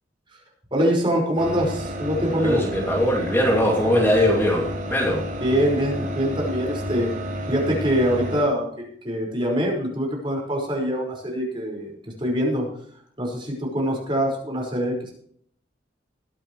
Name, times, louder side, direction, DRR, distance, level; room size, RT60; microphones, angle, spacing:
voice 1, 0.7-2.6 5.4-7.1 7.5-11.9 12.2-12.7 13.2-15.1, equal, 30° right, -1 dB, 5.4 m, -24 dB
sound 1, 1.4-8.4, equal, 50° right, 5.4 m, -31 dB
voice 2, 2.4-5.2, equal, 15° left, -2 dB, 2.7 m, -21 dB
21.5 x 9.0 x 3.2 m, 0.62 s
head